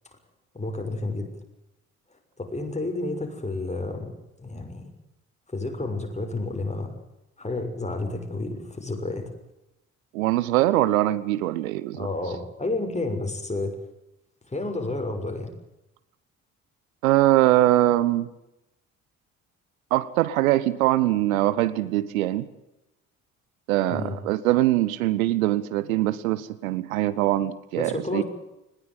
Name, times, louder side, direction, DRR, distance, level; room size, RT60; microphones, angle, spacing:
voice 1, 0.5-1.3 2.4-4.1 4.4-4.9 5.5-6.9 7.4-9.3 11.9-13.8 14.5-15.5 23.9-24.2 27.7-28.2, left 2 dB, 15° left, 3 dB, 6.4 m, -30 dB
voice 2, 10.1-12.1 17.0-18.3 19.9-22.5 23.7-28.2, right 15 dB, 80° right, 17 dB, 0.8 m, -22 dB
20.5 x 17.5 x 9.4 m, 0.90 s
figure-of-eight pair, 40°, 41 cm